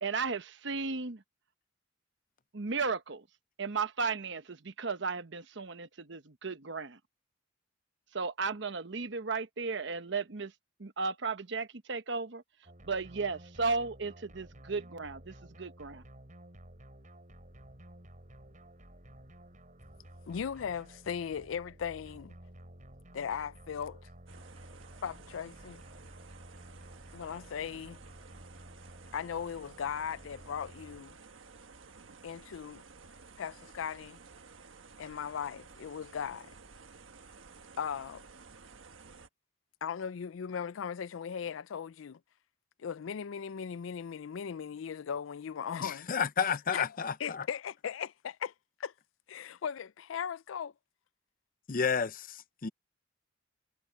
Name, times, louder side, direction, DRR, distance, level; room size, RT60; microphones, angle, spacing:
voice 1, 0.0-1.2 2.5-3.2 3.6-7.0 8.1-10.5 10.8-12.4 12.8-16.0, right 4 dB, 65° right, 1.0 m, -35 dB
sound 1, 12.7-31.0, right 1 dB, 40° right, 7.1 m, -53 dB
voice 2, 20.3-22.3 23.1-24.0 25.0-25.8 27.1-28.0 29.1-31.2 32.2-32.8 33.4-34.2 35.0-36.5 37.8-38.2 39.8-42.2 42.8-46.1 46.7-48.5 48.8-48.9 49.3-50.7, left 7 dB, 85° left, 0.4 m, -38 dB
sound 2, 24.3-39.3, right 4 dB, 80° right, 1.3 m, -54 dB
voice 3, 45.8-47.4 51.7-52.7, left 6 dB, 45° left, 0.7 m, -31 dB
head